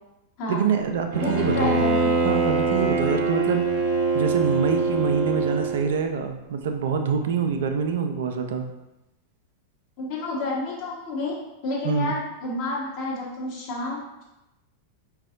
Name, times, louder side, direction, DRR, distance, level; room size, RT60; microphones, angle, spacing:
voice 1, 0.5-1.8 2.2-3.7 4.1-8.6 11.8-12.2, right 6 dB, 60° right, 5 dB, 0.4 m, -25 dB
Bowed string instrument, 1.1-6.0, right 3 dB, 40° right, 0.7 m, -23 dB
voice 2, 1.2-2.2 10.0-14.2, left 2 dB, 45° left, -6 dB, 1.3 m, -30 dB
4.8 x 2.6 x 2.5 m, 0.95 s
figure-of-eight pair, 90°, 0 cm